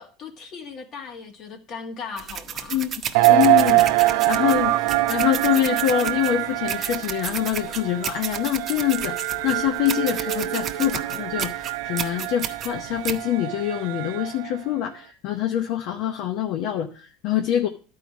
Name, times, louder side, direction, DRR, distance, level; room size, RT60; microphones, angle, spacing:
voice 1, 0.0-2.8, left 5 dB, 45° left, 1.6 m, -38 dB
sound 1, 2.2-13.2, right 8 dB, 40° right, 0.8 m, -33 dB
sound 2, 3.1-14.6, right 17 dB, 75° right, 0.6 m, -24 dB
voice 2, 3.3-17.7, left 11 dB, 65° left, 0.8 m, -25 dB
11.5 x 4.9 x 5.9 m
supercardioid pair, 100°, 0 cm